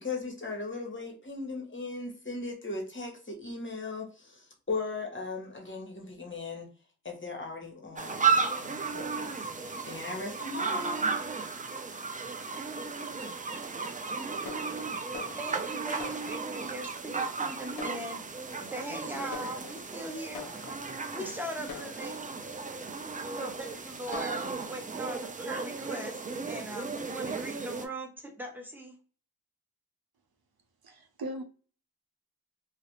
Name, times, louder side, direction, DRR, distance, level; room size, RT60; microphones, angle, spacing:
voice 1, 0.0-6.7 7.0-11.1, left 3 dB, 30° left, 0.9 m, -38 dB
sound 1, 8.0-27.9, right 5 dB, 20° right, 0.4 m, -34 dB
Fireworks, 14.5-16.8 17.4-17.5 17.8-18.7 19.3-21.1 21.7-22.6 23.3-23.4 23.7-23.8 24.1-24.5, left 5 dB, 60° left, 0.6 m, -46 dB
voice 2, 15.4-20.8 21.1-22.2 23.4-28.9, right 1 dB, 5° right, 0.9 m, -41 dB
voice 3, 30.8-31.4, right 1 dB, 65° right, 0.6 m, -38 dB
2.4 x 2.0 x 2.9 m
cardioid pair, 40°, 39 cm